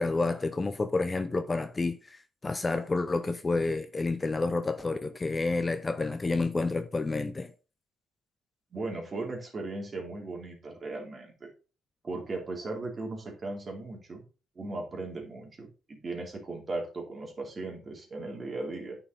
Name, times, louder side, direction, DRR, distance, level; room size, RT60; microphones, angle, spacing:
voice 1, 0.0-7.5, left 3 dB, 25° left, 0.7 m, -29 dB
voice 2, 8.7-11.5 12.0-14.2 14.5-19.0, right 2 dB, 35° right, 3.2 m, -37 dB
9.6 x 5.9 x 4.0 m
cardioid pair, 90°, 0 cm